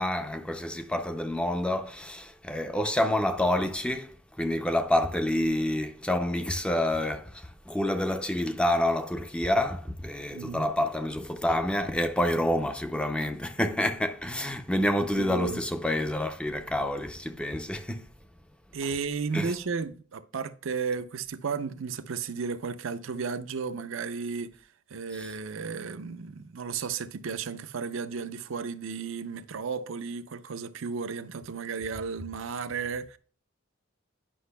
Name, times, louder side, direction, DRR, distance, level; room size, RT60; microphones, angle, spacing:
voice 1, 0.0-18.1 19.3-19.6 25.1-25.3, left 1 dB, 5° left, 0.4 m, -28 dB
voice 2, 10.3-10.7 15.2-15.6 18.7-24.5 24.9-33.2, right 5 dB, 80° right, 0.5 m, -34 dB
9.9 x 5.8 x 2.2 m
head